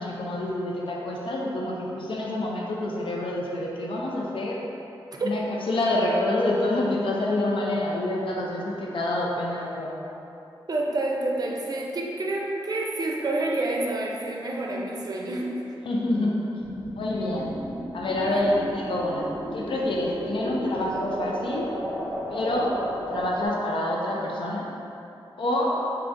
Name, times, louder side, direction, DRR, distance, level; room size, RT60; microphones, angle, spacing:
voice 1, 0.0-4.6 5.2-9.9 15.8-16.4 16.9-17.6 17.9-21.7 22.3-22.7 23.1-24.7 25.4-25.8, left 1 dB, 65° left, -3 dB, 0.5 m, -27 dB
voice 2, 10.7-15.5 18.3-18.5, right 2 dB, 45° right, -1 dB, 0.5 m, -28 dB
sound 1, 16.6-23.5, equal, 45° left, 1.2 m, -34 dB
4.3 x 3.5 x 2.6 m, 2.9 s
wide cardioid pair, 105°, 9 cm